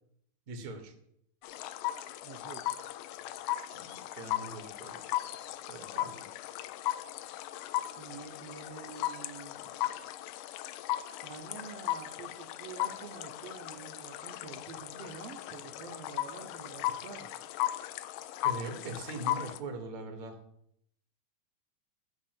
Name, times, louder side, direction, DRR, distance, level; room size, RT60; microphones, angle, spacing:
voice 1, 0.5-0.9 3.7-5.0 5.7-6.3 18.4-20.4, right 2 dB, 50° right, 5 dB, 1.0 m, -41 dB
Stefan a frog from Poland., 1.4-19.6, left 14 dB, 80° left, 2.1 m, -37 dB
voice 2, 2.2-2.9 8.0-10.0 11.2-17.3, right 6 dB, 75° right, 3 dB, 1.5 m, -48 dB
9.5 x 4.3 x 7.5 m, 0.72 s
omnidirectional pair, 3.8 m